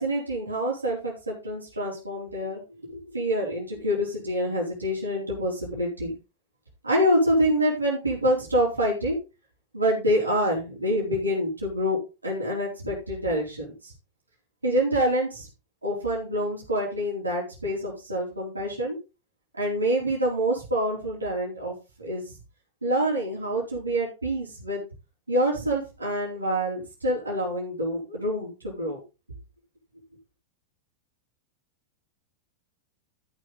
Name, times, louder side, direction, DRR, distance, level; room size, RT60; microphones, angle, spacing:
voice 1, 0.0-6.1 6.8-9.2 9.7-13.9 14.6-15.5 15.8-19.0 19.5-22.3 22.8-24.8 25.3-29.0, equal, 80° right, -3 dB, 4.1 m, -26 dB
13.5 x 6.5 x 4.0 m, 0.29 s
figure-of-eight pair, 90°, 0 cm